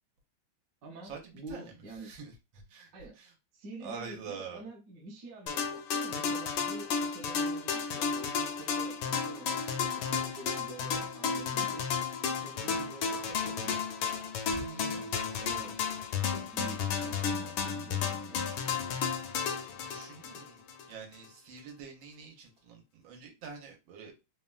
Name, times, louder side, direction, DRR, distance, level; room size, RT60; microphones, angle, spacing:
voice 1, 0.8-2.1 2.9-3.2 3.5-11.9 12.3-13.8 14.8-15.8 16.3-18.6, right 2 dB, 60° right, 1.0 m, -48 dB
voice 2, 2.0-2.9 3.2-3.3 3.8-4.6 14.5-15.1 19.7-24.1, right 5 dB, 80° right, 1.5 m, -46 dB
sound 1, 5.5-20.9, left 6 dB, 80° left, 1.3 m, -33 dB
3.6 x 2.1 x 2.3 m
omnidirectional pair, 2.2 m